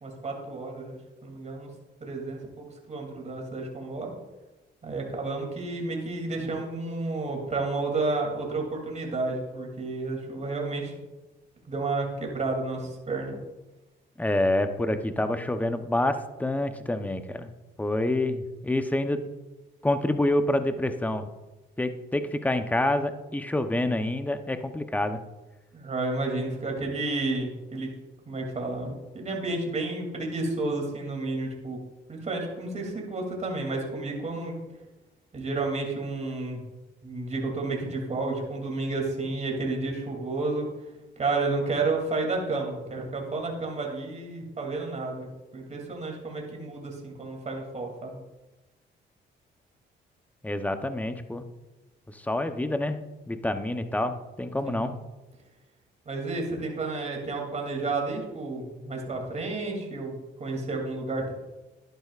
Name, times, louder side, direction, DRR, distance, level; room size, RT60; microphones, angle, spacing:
voice 1, 0.0-0.9 1.2-1.7 2.0-4.1 4.8-10.9 11.7-13.4 25.7-27.9 28.3-31.8 32.1-34.5 35.3-36.6 37.0-40.7 41.2-48.2 54.6-55.0 56.1-61.3, right 3 dB, 35° right, 1 dB, 2.8 m, -31 dB
voice 2, 14.2-17.5 17.8-19.2 19.8-21.3 21.8-25.2 50.4-51.4 52.1-53.0 53.3-54.9, left 1 dB, 10° left, 8 dB, 0.8 m, -27 dB
11.5 x 11.0 x 2.5 m, 1.1 s
cardioid pair, 90°, 20 cm